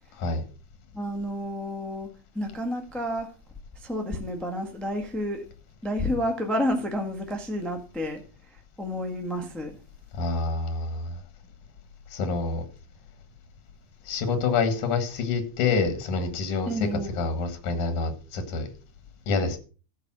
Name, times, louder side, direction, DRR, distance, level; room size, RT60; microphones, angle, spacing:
voice 1, 0.9-2.1 2.3-3.3 3.7-5.4 5.8-9.8 16.6-17.2, equal, ahead, 0.8 m, -30 dB
voice 2, 10.1-11.2 12.1-12.6 14.1-16.9 17.2-18.7 19.3-19.6, left 4 dB, 85° left, 3.1 m, -27 dB
13.5 x 4.8 x 6.1 m
omnidirectional pair, 3.4 m